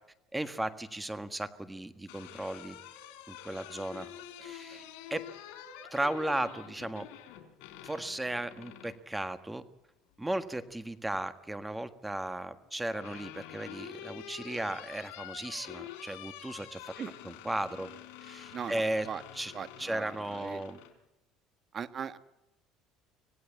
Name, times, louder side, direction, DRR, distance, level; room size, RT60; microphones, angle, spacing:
voice 1, 0.3-2.8 3.3-4.1 4.4-4.8 5.1-5.2 5.9-7.1 7.8-9.6 10.2-16.9 17.2-17.9 18.2-19.1 19.3-19.5 19.8-20.8, right 1 dB, 10° right, 11 dB, 1.6 m, -35 dB
sound 1, 1.8-9.0 10.5-11.2 12.4-20.9, left 11 dB, 80° left, 3.7 m, -47 dB
voice 2, 4.0-4.8 17.0-17.1 18.5-19.2 19.5-20.6 21.7-22.2, right 7 dB, 40° right, 13 dB, 1.3 m, -41 dB
25.5 x 17.5 x 8.5 m, 0.92 s
cardioid pair, 115°, 0 cm